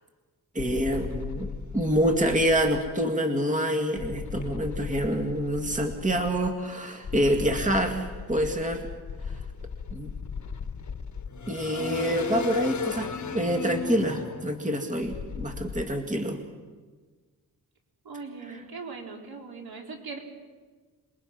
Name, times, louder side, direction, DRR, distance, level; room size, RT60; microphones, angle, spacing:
voice 1, 0.5-8.9 9.3-9.4 9.9-10.1 11.5-16.4 18.5-18.6, equal, 20° right, 4 dB, 2.2 m, -27 dB
sound 1, 0.6-2.9 4.0-6.5 7.0-15.8, left 5 dB, 50° left, 1.5 m, -36 dB
voice 2, 18.0-20.2, right 4 dB, 70° right, 1 dB, 4.2 m, -40 dB
27.5 x 22.0 x 6.1 m, 1.4 s
wide cardioid pair, 105°, 38 cm